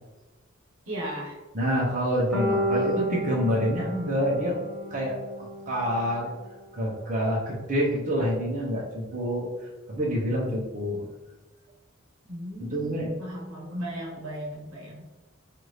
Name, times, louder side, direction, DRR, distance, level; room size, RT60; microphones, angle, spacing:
voice 1, 0.9-1.4 12.3-15.0, equal, 80° right, -2 dB, 1.0 m, -36 dB
voice 2, 1.5-4.6 4.9-5.1 5.4-6.3 6.7-9.5 9.9-11.1 12.6-13.1, equal, 40° right, -4 dB, 0.9 m, -27 dB
sound 1, 2.3-6.4, left 1 dB, ahead, 1.0 m, -32 dB
4.6 x 2.5 x 3.2 m, 1.2 s
head